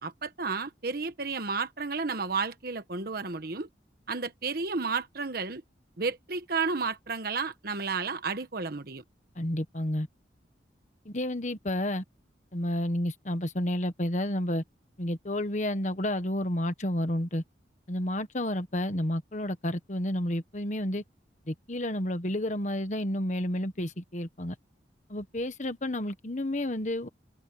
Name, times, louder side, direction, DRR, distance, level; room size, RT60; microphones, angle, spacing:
voice 1, 0.0-3.7 4.1-5.6 6.0-9.0, right 4 dB, 55° right, 1.2 m, -32 dB
voice 2, 9.4-10.1 11.0-12.0 12.5-14.6 15.0-17.4 17.9-21.0 21.5-24.6 25.1-27.1, left 1 dB, 40° left, 1.4 m, -30 dB
open air
head